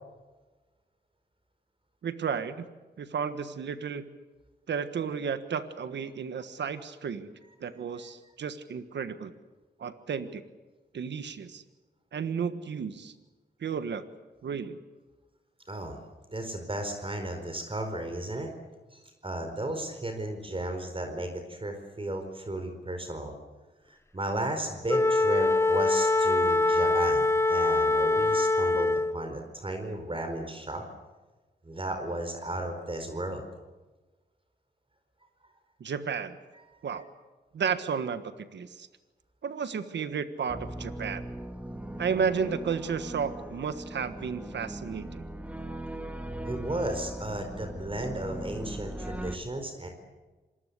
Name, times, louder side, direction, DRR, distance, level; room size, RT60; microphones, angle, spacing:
voice 1, 2.0-2.7 3.0-4.1 4.7-7.3 7.6-9.3 9.8-10.4 10.9-11.6 12.1-13.1 13.6-14.0 14.4-14.8 35.8-36.4 36.8-37.0 37.5-38.9 39.4-41.3 42.0-45.2, right 6 dB, 90° right, 11 dB, 1.5 m, -33 dB
voice 2, 15.7-16.0 16.3-18.5 18.9-23.3 23.9-30.8 31.6-33.4 46.5-49.9, right 1 dB, 30° right, 5 dB, 4.6 m, -34 dB
Wind instrument woodwind instrument, 24.9-29.2, left 2 dB, 15° left, 0.9 m, -24 dB
sound 1, 40.5-49.4, right 1 dB, 10° right, 2.5 m, -39 dB
26.5 x 20.5 x 8.3 m, 1.2 s
cardioid pair, 65°, 18 cm